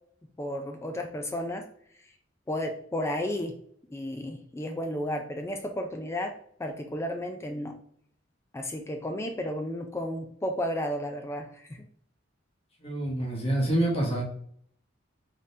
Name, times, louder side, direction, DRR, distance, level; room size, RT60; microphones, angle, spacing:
voice 1, 0.4-1.7 2.5-3.6 3.9-7.8 8.5-11.9, left 1 dB, 15° left, 4 dB, 0.3 m, -33 dB
voice 2, 12.8-14.2, right 1 dB, 30° left, -2 dB, 1.1 m, -27 dB
3.6 x 3.3 x 2.7 m, 0.64 s
head